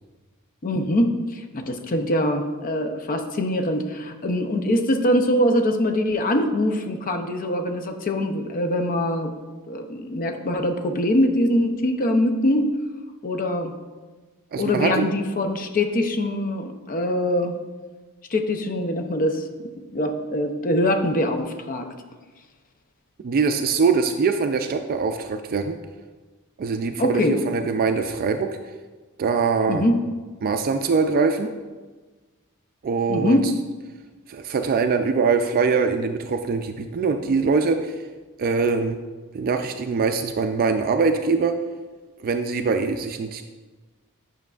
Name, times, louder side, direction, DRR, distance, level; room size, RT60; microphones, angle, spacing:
voice 1, 0.6-9.3 9.7-12.7 13.2-13.7 14.6-17.6 18.3-19.4 19.9-21.9 27.0-27.4 29.7-29.9 33.1-33.5, left 1 dB, 40° left, 5 dB, 0.5 m, -23 dB
voice 2, 14.5-15.1 23.2-25.8 26.6-28.5 29.2-29.9 30.4-31.5 32.8-33.4 34.3-38.0 38.4-39.0 39.3-41.6 42.2-43.4, right 4 dB, 40° right, 6 dB, 0.3 m, -23 dB
9.0 x 5.8 x 2.4 m, 1.3 s
head